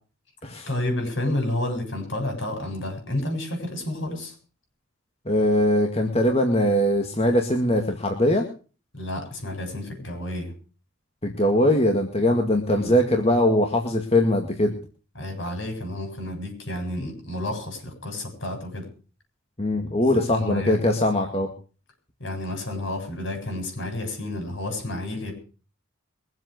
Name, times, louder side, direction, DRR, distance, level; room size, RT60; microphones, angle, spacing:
voice 1, 0.7-4.3 8.9-10.5 12.7-13.0 15.1-18.9 20.1-20.8 22.2-25.3, left 1 dB, 65° left, 4 dB, 7.8 m, -30 dB
voice 2, 5.3-8.5 11.2-14.8 19.6-21.5, left 1 dB, 30° left, 3 dB, 2.0 m, -21 dB
23.0 x 8.1 x 6.7 m, 0.38 s
head